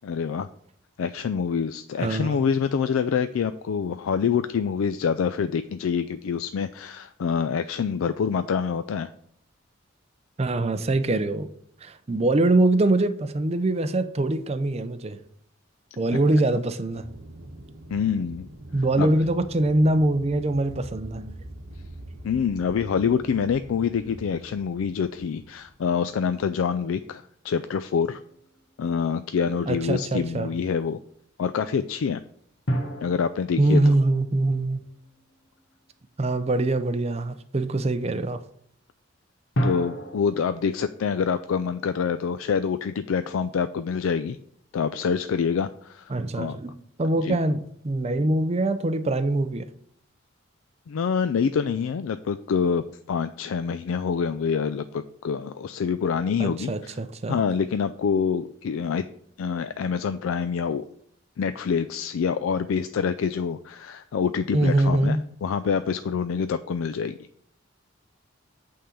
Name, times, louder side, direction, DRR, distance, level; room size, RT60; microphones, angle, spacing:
voice 1, 0.0-0.5 1.0-9.1 17.9-18.5 19.0-19.1 22.2-28.2 28.8-31.0 31.4-32.2 33.0-33.8 39.6-44.4 44.7-46.6 47.2-47.4 50.9-56.9 57.3-59.1 59.4-60.9 61.4-67.2, left 6 dB, 85° left, 0.4 m, -26 dB
voice 2, 2.0-2.4 10.4-11.5 11.8-15.2 16.0-17.1 18.7-21.3 29.7-30.5 33.6-34.8 36.2-38.4 46.1-49.7 56.4-57.4 64.5-65.2, right 2 dB, 30° right, 0.5 m, -23 dB
Aircraft, 16.9-26.4, right 1 dB, 60° right, 1.1 m, -44 dB
sound 1, 28.3-29.0 32.7-35.5 39.5-42.8, right 1 dB, 65° left, 1.2 m, -33 dB
8.5 x 3.8 x 6.9 m
head